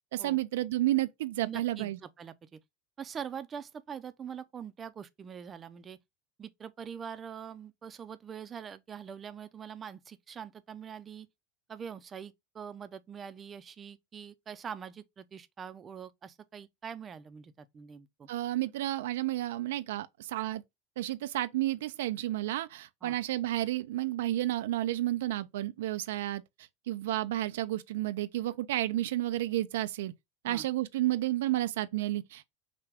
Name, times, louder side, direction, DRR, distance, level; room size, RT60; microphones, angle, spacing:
voice 1, 0.1-2.0 18.3-20.6 21.0-26.4 26.9-30.1 30.4-32.4, right 15 dB, 80° right, 0.4 m, -31 dB
voice 2, 1.4-2.6 3.0-6.0 6.4-11.3 11.7-18.3 23.0-23.2 30.4-30.7, right 7 dB, 25° right, 0.5 m, -43 dB
5.8 x 2.2 x 3.5 m
supercardioid pair, 120°, 0 cm